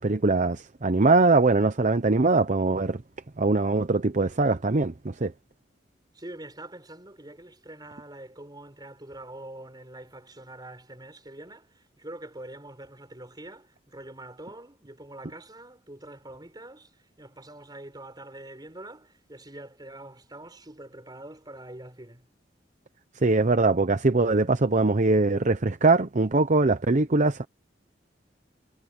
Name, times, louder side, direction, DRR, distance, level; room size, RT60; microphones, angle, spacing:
voice 1, 0.0-3.0 3.4-5.3 23.2-27.5, right 3 dB, 40° right, 0.8 m, -22 dB
voice 2, 6.1-11.7 12.0-16.9 17.2-22.3, right 1 dB, 25° right, 5.1 m, -44 dB
head